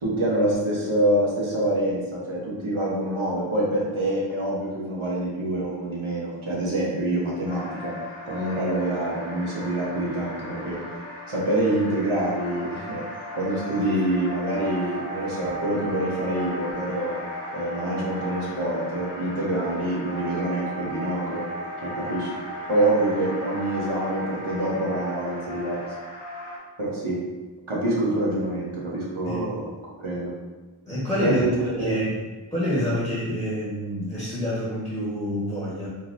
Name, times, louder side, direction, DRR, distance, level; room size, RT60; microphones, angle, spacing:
voice 1, 0.0-8.0 8.2-10.8 11.3-13.0 13.3-17.2 17.5-21.5 21.8-22.3 22.7-25.8 26.8-27.2 27.7-29.6 30.0-30.3 31.2-31.9, right 1 dB, 80° right, -4 dB, 1.0 m, -26 dB
sound 1, 7.5-26.6, equal, 75° left, 1.0 m, -36 dB
voice 2, 30.8-32.2 32.5-35.9, left 1 dB, 5° left, -9 dB, 1.2 m, -27 dB
3.8 x 2.7 x 2.5 m, 1.2 s
wide cardioid pair, 40°, 48 cm